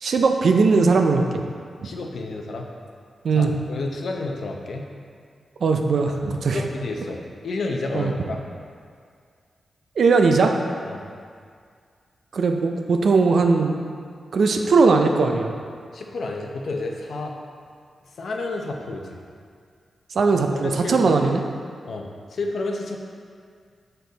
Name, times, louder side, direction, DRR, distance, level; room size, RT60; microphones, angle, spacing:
voice 1, 0.0-1.4 3.2-3.5 5.6-6.6 7.9-8.1 10.0-10.6 12.3-13.8 14.3-15.5 20.1-21.4, right 4 dB, 70° right, 4 dB, 0.5 m, -19 dB
voice 2, 1.8-2.7 3.3-4.9 6.1-6.2 6.5-8.4 10.9-11.0 15.9-17.4 18.1-19.2 20.6-21.1 21.9-23.0, left 2 dB, 70° left, 2 dB, 0.7 m, -30 dB
6.6 x 4.5 x 4.0 m, 2.1 s
wide cardioid pair, 95°, 0 cm